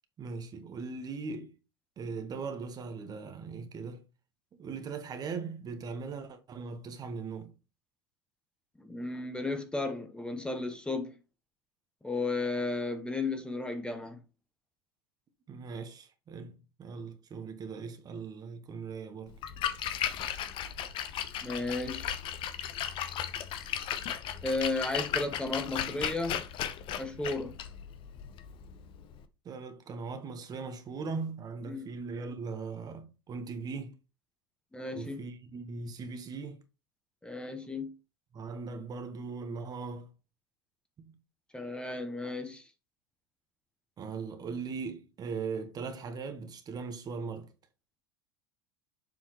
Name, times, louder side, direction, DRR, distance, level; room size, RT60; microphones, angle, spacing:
voice 1, 0.2-1.6 2.0-4.1 4.6-7.6 15.5-19.4 29.4-34.0 34.9-36.6 38.3-40.1 41.0-41.2 44.0-47.5, right 4 dB, 30° right, 1.2 m, -39 dB
voice 2, 8.8-11.1 12.0-14.2 21.4-22.2 24.4-26.4 27.0-27.5 31.7-31.9 34.7-35.2 37.2-37.9 41.5-42.7, left 2 dB, 5° left, 1.2 m, -34 dB
Splash splatter, 19.3-29.2, left 10 dB, 45° left, 0.8 m, -36 dB
7.3 x 5.5 x 3.0 m
figure-of-eight pair, 75°, 12 cm